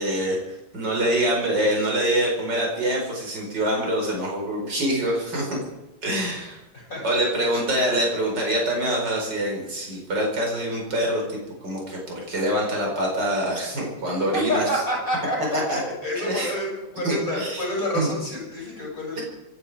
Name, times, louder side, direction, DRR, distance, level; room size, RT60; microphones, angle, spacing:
voice 1, 0.0-5.6 6.0-6.6 7.0-11.4 11.6-14.8 15.5-15.8 16.1-16.5 17.0-17.7 17.9-18.1 19.2-19.3, right 1 dB, 60° right, -1 dB, 5.5 m, -25 dB
voice 2, 14.5-15.4 15.7-16.7 16.9-19.2, left 1 dB, 40° left, -3 dB, 7.8 m, -28 dB
26.5 x 11.0 x 4.9 m, 0.98 s
omnidirectional pair, 2.1 m